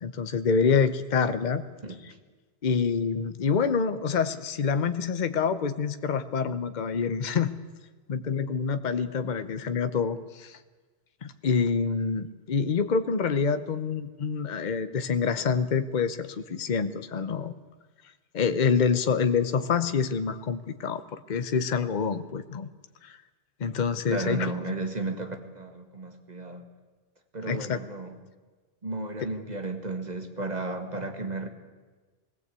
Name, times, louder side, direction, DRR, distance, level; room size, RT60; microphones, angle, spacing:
voice 1, 0.0-1.6 2.6-7.5 8.1-10.6 11.2-17.5 18.3-22.7 23.0-23.2 23.6-24.5 27.5-27.8, left 5 dB, 45° left, 11 dB, 0.9 m, -26 dB
voice 2, 1.8-2.2 24.1-26.7 27.3-28.2 28.8-31.5, right 2 dB, 40° right, 5 dB, 1.8 m, -34 dB
19.5 x 17.0 x 8.2 m, 1.3 s
omnidirectional pair, 1.1 m